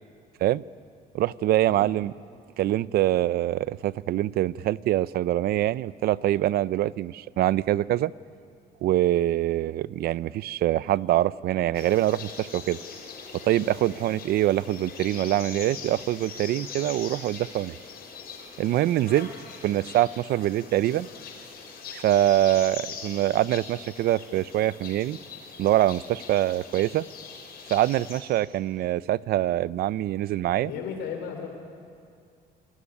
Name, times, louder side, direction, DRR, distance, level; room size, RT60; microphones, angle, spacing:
voice 1, 1.1-2.1 2.6-8.1 8.8-12.8 13.4-17.8 18.6-19.3 19.6-21.1 21.9-25.2 25.6-27.0 27.7-30.7, right 14 dB, 65° right, 18 dB, 0.6 m, -24 dB
sound 1, 11.7-28.2, left 6 dB, 65° left, 6.3 m, -42 dB
voice 2, 30.5-31.5, left 7 dB, 85° left, 3 dB, 3.7 m, -35 dB
27.0 x 20.5 x 9.8 m, 2.3 s
cardioid pair, 110°, 17 cm